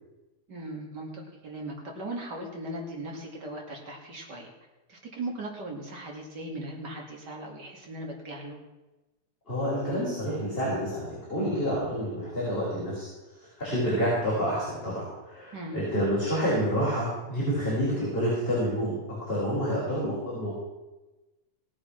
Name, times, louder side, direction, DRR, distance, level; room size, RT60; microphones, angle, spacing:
voice 1, 0.5-4.5 4.9-8.6 15.5-15.8, right 1 dB, 35° right, 0 dB, 2.7 m, -38 dB
voice 2, 9.5-13.1 13.6-18.9 19.2-20.5, equal, 15° left, -8 dB, 4.9 m, -28 dB
17.5 x 8.5 x 5.9 m, 1.1 s
omnidirectional pair, 3.5 m